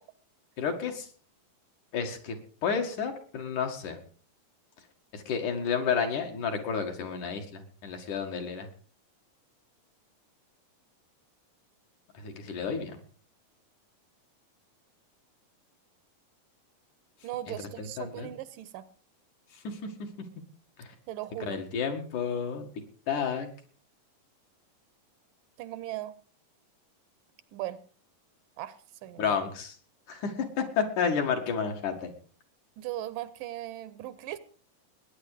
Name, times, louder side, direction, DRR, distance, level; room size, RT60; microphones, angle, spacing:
voice 1, 0.6-1.1 1.9-2.4 2.6-4.0 5.1-8.7 12.1-13.0 17.8-18.3 19.6-19.9 20.8-20.9 21.5-22.7 23.1-23.5 29.2-29.7 30.1-32.1, left 6 dB, 65° left, 3 dB, 3.4 m, -31 dB
voice 2, 17.2-18.9 21.1-21.6 25.6-26.2 27.5-27.8 28.6-29.4 32.8-34.4, right 14 dB, 75° right, 15 dB, 2.4 m, -38 dB
19.5 x 9.7 x 5.0 m, 0.42 s
omnidirectional pair, 4.0 m